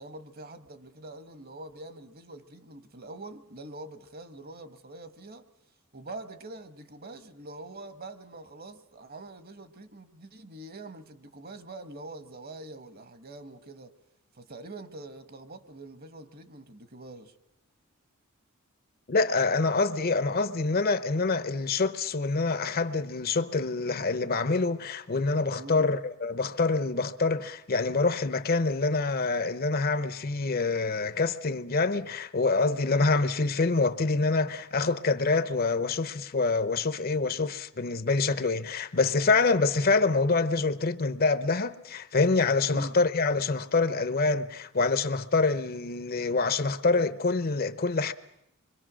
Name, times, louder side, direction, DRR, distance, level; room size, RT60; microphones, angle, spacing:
voice 1, 0.0-5.5 5.9-13.9 14.3-17.3 25.6-26.0 42.7-43.0, right 2 dB, 45° right, 1.4 m, -44 dB
voice 2, 19.1-48.1, left 3 dB, 45° left, 0.8 m, -26 dB
26.0 x 23.5 x 6.2 m
head